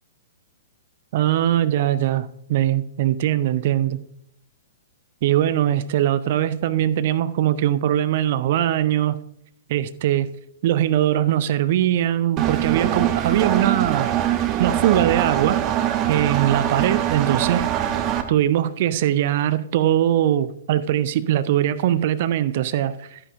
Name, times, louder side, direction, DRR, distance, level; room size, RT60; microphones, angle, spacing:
voice 1, 1.1-4.0 5.2-9.2 9.7-10.3 10.6-14.1 14.6-15.6 16.1-17.9 18.3-23.2, right 11 dB, 45° right, 0.4 m, -21 dB
Engine, 12.4-18.2, right 11 dB, 30° right, 0.9 m, -23 dB
11.0 x 9.9 x 2.6 m
figure-of-eight pair, 110°, 0 cm